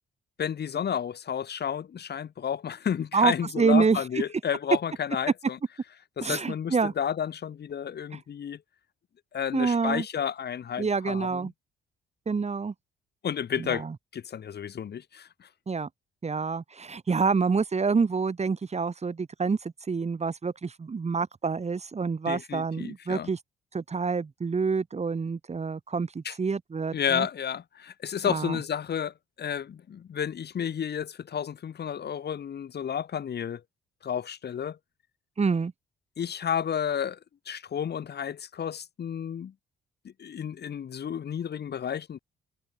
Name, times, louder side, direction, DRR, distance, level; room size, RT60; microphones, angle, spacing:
voice 1, 0.4-5.6 6.2-8.6 9.3-11.5 13.2-13.9 14.1-15.5 22.3-23.3 26.2-26.3 26.9-33.6 34.0-34.8 36.2-37.2 37.5-39.5 40.0-42.2, left 8 dB, 55° left, 5.8 m, -31 dB
voice 2, 3.1-4.0 6.2-6.9 9.5-10.0 10.8-11.5 12.3-12.7 13.6-13.9 15.7-15.9 16.2-23.4 23.7-27.3 28.3-28.6 35.4-35.7, right 5 dB, 35° right, 4.5 m, -27 dB
cardioid pair, 90°, 20 cm